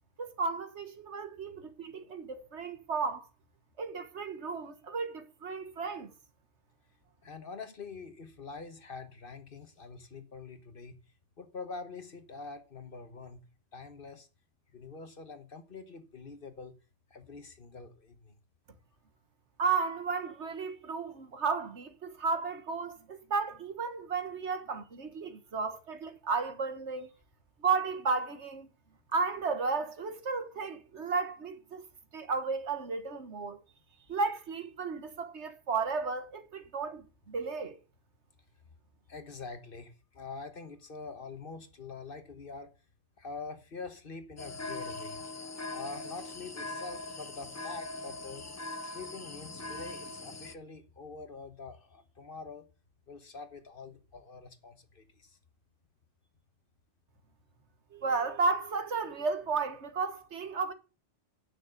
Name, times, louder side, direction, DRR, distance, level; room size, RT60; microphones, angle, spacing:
voice 1, 0.2-3.3 3.8-6.1 19.6-27.1 27.6-28.7 29.1-31.8 32.1-33.6 34.1-37.8 57.9-60.7, right 4 dB, 70° right, 1.6 m, -33 dB
voice 2, 7.2-11.0 11.4-13.4 13.7-14.3 14.7-16.8 17.1-18.3 39.1-42.7 43.2-45.2 45.7-48.5 48.8-52.7 53.1-55.4, left 4 dB, 50° left, 1.4 m, -45 dB
sound 1, 44.4-50.5, left 2 dB, 25° left, 0.4 m, -41 dB
9.4 x 6.4 x 6.4 m
omnidirectional pair, 1.2 m